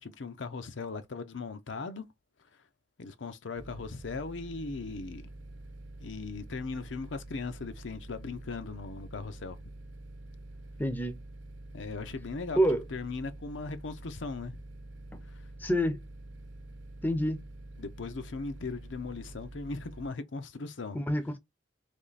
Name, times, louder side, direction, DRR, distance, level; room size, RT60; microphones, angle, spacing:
voice 1, 0.0-2.0 3.0-5.3 6.0-9.6 11.7-12.6 12.9-14.6 15.3-15.4 17.8-21.0, left 4 dB, 80° left, 0.6 m, -38 dB
sound 1, 3.6-20.1, right 2 dB, 75° right, 0.8 m, -47 dB
voice 2, 10.8-11.2 12.6-12.8 15.1-15.2 15.6-16.0 17.0-17.4 20.9-21.4, equal, 10° left, 0.6 m, -27 dB
3.5 x 3.2 x 4.0 m
head